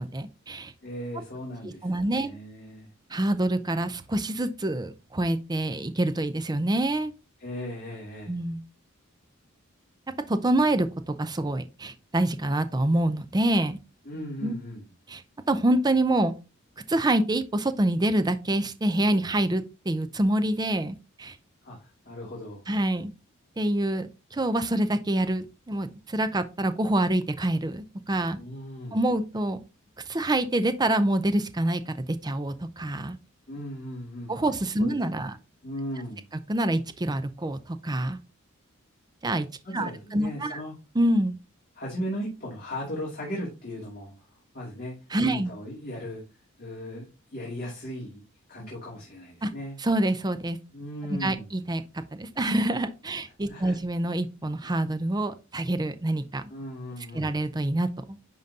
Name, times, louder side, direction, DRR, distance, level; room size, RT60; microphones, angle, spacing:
voice 1, 0.0-0.7 1.6-2.3 3.1-7.1 8.3-8.6 10.3-13.8 14.4-14.5 15.1-15.2 15.5-16.3 16.9-21.4 22.7-23.1 23.6-28.4 28.9-29.6 30.1-33.2 34.3-35.3 36.5-38.2 39.2-39.5 39.7-40.6 41.0-41.4 45.1-45.5 49.4-49.5 49.8-50.6 51.1-51.8 52.1-56.4 57.1-58.2, right 1 dB, 20° right, 0.5 m, -26 dB
voice 2, 0.8-2.9 7.4-8.4 14.0-14.8 21.6-22.6 28.4-29.0 33.5-34.3 34.8-35.3 35.6-36.2 39.6-40.8 41.8-44.3 44.5-45.0 45.2-46.2 46.6-49.8 50.7-51.5 53.5-53.8 56.5-57.3, equal, 45° left, 2.4 m, -37 dB
10.5 x 3.9 x 2.8 m
head